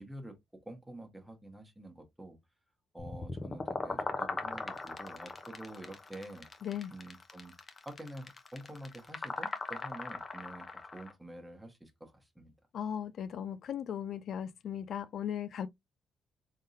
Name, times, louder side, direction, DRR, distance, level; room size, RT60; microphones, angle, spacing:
voice 1, 0.0-2.4 2.9-6.5 6.9-7.5 7.8-10.7 10.9-12.5, right 1 dB, 5° right, 1.2 m, -48 dB
sound 1, 3.0-11.1, left 3 dB, 30° left, 0.8 m, -39 dB
voice 2, 6.6-6.9 12.7-15.7, left 9 dB, 65° left, 0.4 m, -37 dB
3.7 x 3.6 x 2.6 m
cardioid pair, 90°, 0 cm